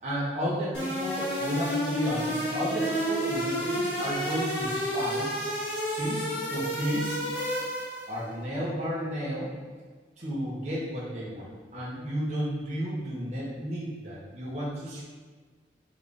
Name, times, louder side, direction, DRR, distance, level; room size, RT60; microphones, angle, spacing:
voice 1, 0.0-5.3 5.9-7.3 8.1-9.5 10.2-15.0, equal, 40° right, -7 dB, 0.9 m, -32 dB
sound 1, 0.7-8.2, equal, 70° left, 1.4 m, -30 dB
4.7 x 3.6 x 2.6 m, 1.5 s
head